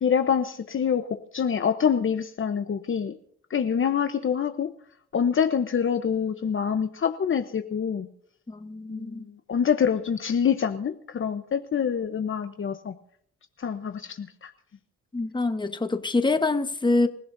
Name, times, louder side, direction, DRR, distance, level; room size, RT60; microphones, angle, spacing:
voice 1, 0.0-1.1 1.3-3.1 3.5-4.7 5.1-8.1 8.9-9.2 9.5-12.9 13.6-14.5, left 7 dB, 40° left, 8 dB, 1.0 m, -26 dB
voice 2, 8.5-9.3 15.1-17.1, left 3 dB, 15° left, 8 dB, 1.3 m, -25 dB
27.0 x 15.5 x 2.7 m, 0.63 s
cardioid pair, 90°, 30 cm